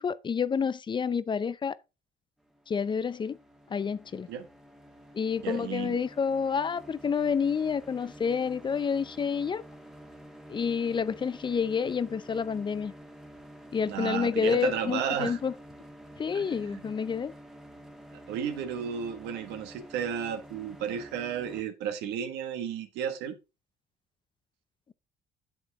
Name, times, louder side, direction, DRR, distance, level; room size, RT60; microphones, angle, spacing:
voice 1, 0.0-1.8 2.7-3.4 3.7-4.3 5.1-9.6 10.5-12.9 13.7-15.5 16.2-17.3, left 6 dB, 30° left, 0.5 m, -29 dB
sound 1, 2.4-21.6, equal, 5° right, 1.3 m, -49 dB
voice 2, 5.4-6.0 13.9-15.4 16.3-16.8 18.3-23.3, right 8 dB, 90° right, 1.6 m, -33 dB
8.0 x 7.6 x 3.5 m
cardioid pair, 110°, 17 cm